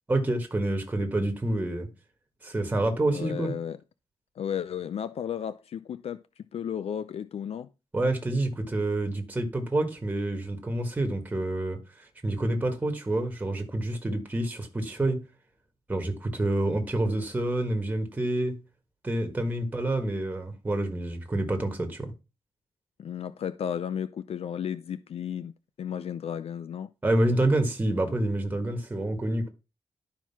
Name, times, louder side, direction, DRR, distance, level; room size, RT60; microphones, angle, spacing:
voice 1, 0.1-1.9 2.4-3.5 7.9-15.2 15.9-18.6 19.0-22.1 27.0-29.5, right 1 dB, 15° right, 1.7 m, -28 dB
voice 2, 3.1-3.8 4.4-6.2 6.5-7.7 23.0-25.5 25.8-26.9, left 8 dB, 70° left, 0.6 m, -33 dB
11.5 x 4.6 x 5.8 m
wide cardioid pair, 175°, 11 cm